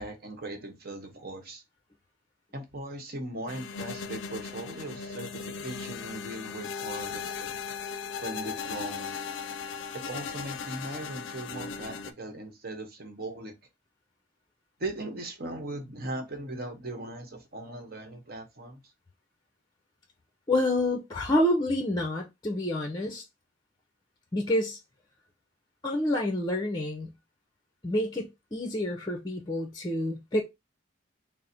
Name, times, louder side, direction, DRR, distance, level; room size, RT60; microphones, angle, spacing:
voice 1, 0.0-1.6 2.5-7.6 8.2-9.2 9.9-13.5 14.8-18.8, right 1 dB, 50° right, 1.0 m, -39 dB
sound 1, 3.5-12.1, left 6 dB, 65° left, 0.4 m, -37 dB
voice 2, 20.5-23.2 24.3-24.8 25.8-27.1 27.8-30.4, left 1 dB, 20° left, 0.6 m, -28 dB
3.9 x 2.0 x 4.2 m
head